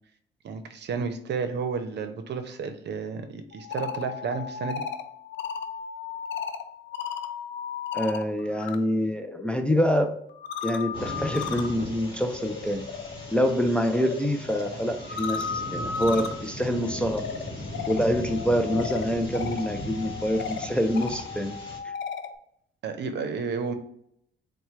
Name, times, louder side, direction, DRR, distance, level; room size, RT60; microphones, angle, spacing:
voice 1, 0.4-4.8 22.8-23.7, right 5 dB, 60° right, 8 dB, 0.7 m, -32 dB
sound 1, 3.5-8.8 9.1-22.4, left 6 dB, 65° left, 0.5 m, -36 dB
voice 2, 7.9-10.1 10.6-12.9 13.3-17.3 17.9-21.6, equal, 5° left, 5 dB, 0.4 m, -26 dB
sound 2, 10.9-21.8, left 1 dB, 25° left, 1.7 m, -38 dB
4.2 x 2.2 x 4.6 m, 0.69 s
cardioid pair, 90°, 20 cm